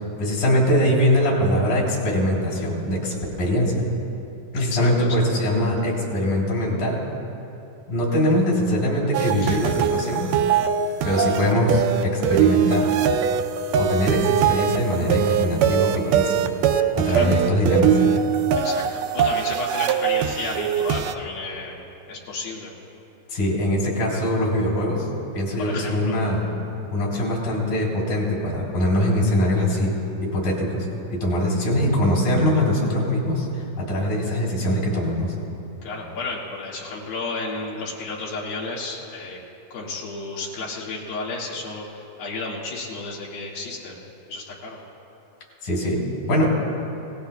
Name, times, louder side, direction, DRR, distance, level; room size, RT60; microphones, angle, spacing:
voice 1, 0.2-3.8 4.5-7.0 7.9-10.3 11.0-12.9 13.8-16.4 16.9-17.9 23.3-25.1 25.3-26.4 26.9-33.5 33.8-35.3 45.6-46.0 46.3-46.5, left 1 dB, 70° left, -3 dB, 5.1 m, -22 dB
voice 2, 4.5-5.1 9.4-9.5 17.2-17.3 18.6-21.8 22.1-22.7 25.6-26.2 35.8-39.4 39.7-44.0 44.3-44.8, left 3 dB, 90° left, -4 dB, 3.9 m, -32 dB
sound 1, 9.1-21.1, right 8 dB, 80° right, 2.0 m, -22 dB
28.5 x 17.5 x 2.3 m, 2.8 s
omnidirectional pair, 4.1 m